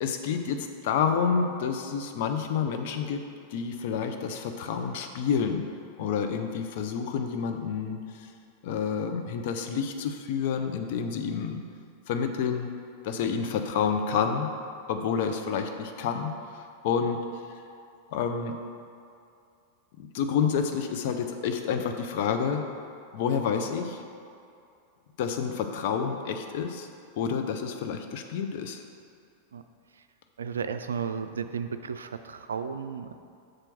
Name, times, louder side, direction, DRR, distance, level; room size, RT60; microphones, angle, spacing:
voice 1, 0.0-3.2 3.5-5.7 6.0-8.3 8.6-11.6 12.1-12.7 13.0-14.5 14.9-17.2 18.1-18.6 20.0-22.6 23.1-24.0 25.2-26.9 27.2-28.8, left 6 dB, 50° left, 6 dB, 0.6 m, -29 dB
voice 2, 30.4-33.2, right 6 dB, 70° right, 9 dB, 0.4 m, -33 dB
6.4 x 4.5 x 6.0 m, 2.5 s
figure-of-eight pair, 90°, 0 cm